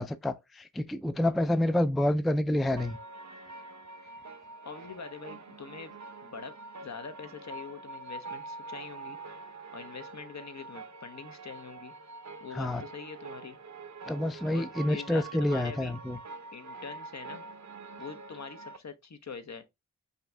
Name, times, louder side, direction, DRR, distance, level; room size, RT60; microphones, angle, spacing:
voice 1, 0.0-3.0 12.5-12.8 14.1-16.2, left 1 dB, ahead, 0.3 m, -28 dB
sound 1, 2.8-18.8, right 3 dB, 60° right, 0.7 m, -45 dB
voice 2, 4.6-5.9 6.2-9.2 9.7-11.9 12.4-13.6 14.5-15.9 16.5-17.4 18.0-19.6, left 5 dB, 55° left, 0.8 m, -44 dB
5.3 x 2.6 x 3.3 m
wide cardioid pair, 60°, 32 cm